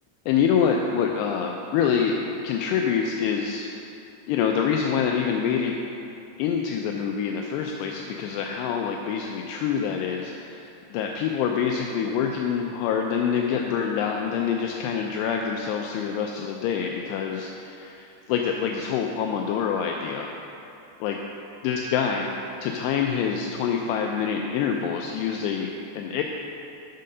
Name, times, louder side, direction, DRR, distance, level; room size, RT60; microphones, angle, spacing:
voice 1, 0.3-2.2 2.4-3.7 4.3-5.8 6.4-20.3 21.0-21.2 21.6-22.3 22.6-26.2, left 7 dB, 85° left, 2 dB, 2.4 m, -26 dB
9.0 x 6.6 x 5.5 m, 2.8 s
omnidirectional pair, 5.3 m